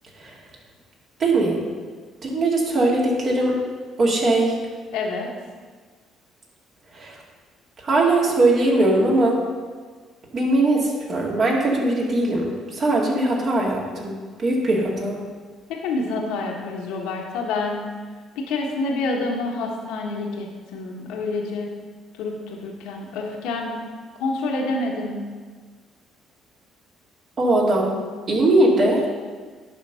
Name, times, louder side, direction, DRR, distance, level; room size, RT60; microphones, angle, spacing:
voice 1, 1.2-1.6 2.2-3.6 4.0-4.5 6.9-7.2 7.8-9.4 10.3-14.1 14.4-15.2 27.4-28.0 28.3-29.0, right 2 dB, 50° right, -2 dB, 2.3 m, -20 dB
voice 2, 4.9-5.3 15.7-17.8 18.3-21.7 22.2-23.7 24.2-25.3, left 3 dB, 85° left, 0 dB, 1.2 m, -27 dB
11.0 x 4.0 x 5.6 m, 1.5 s
supercardioid pair, 70°, 0 cm